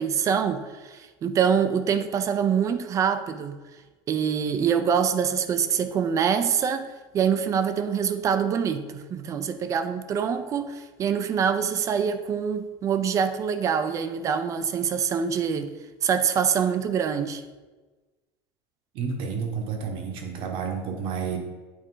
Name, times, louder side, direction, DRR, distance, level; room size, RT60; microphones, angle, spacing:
voice 1, 0.0-3.6 4.1-15.7 16.0-17.4, right 7 dB, 25° right, 0.4 m, -25 dB
voice 2, 18.9-21.4, right 6 dB, 45° right, 1.1 m, -30 dB
8.4 x 4.3 x 3.8 m
cardioid pair, 155°, 12 cm